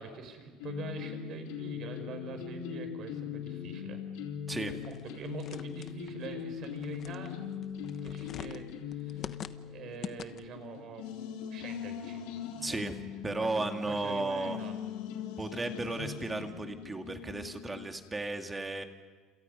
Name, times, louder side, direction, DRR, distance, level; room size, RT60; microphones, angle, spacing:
voice 1, 0.0-4.0 4.7-7.3 8.0-11.1 11.5-12.3 12.7-12.8 13.4-14.7, right 6 dB, 50° right, 7 dB, 5.3 m, -45 dB
sound 1, 0.6-17.9, left 8 dB, 90° left, 3.9 m, -41 dB
voice 2, 4.5-4.8 12.6-13.0 13.2-14.6 15.4-18.8, right 2 dB, 15° right, 5 dB, 2.2 m, -34 dB
sound 2, 4.8-10.7, left 8 dB, 40° left, 1.1 m, -46 dB
28.0 x 28.0 x 5.5 m, 1.5 s
cardioid pair, 130°, 0 cm